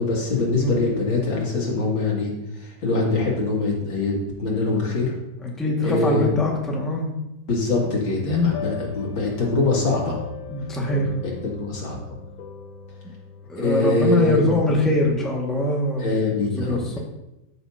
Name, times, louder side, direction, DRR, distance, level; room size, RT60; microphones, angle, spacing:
voice 1, 0.0-2.3 2.6-5.1 5.8-6.3 7.5-10.2 11.2-12.0 13.6-14.5 16.0-17.0, left 3 dB, 80° left, -3 dB, 2.8 m, -23 dB
voice 2, 5.4-7.1 8.2-8.5 10.5-11.1 13.5-16.2 16.6-17.0, left 1 dB, ahead, -2 dB, 1.4 m, -23 dB
sound 1, 8.4-13.5, left 5 dB, 60° left, 1.1 m, -36 dB
13.5 x 6.8 x 2.7 m, 0.92 s
omnidirectional pair, 2.1 m